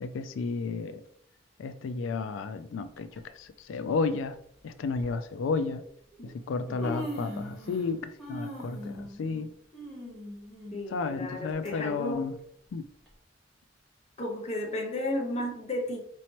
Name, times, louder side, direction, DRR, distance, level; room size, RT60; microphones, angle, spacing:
voice 1, 0.0-1.0 1.6-4.4 4.6-5.8 6.2-9.5 10.9-12.4 12.7-12.8, left 4 dB, 85° left, 0.3 m, -32 dB
Human voice, 3.0-3.2 4.2-4.3 4.9-5.1 6.1-6.2 6.5-7.9 8.2-11.7 12.1-12.2 13.1-13.2, equal, 5° left, 1.2 m, -40 dB
voice 2, 10.7-12.3 14.2-16.1, left 1 dB, 35° left, 0.8 m, -34 dB
4.1 x 3.1 x 2.9 m
head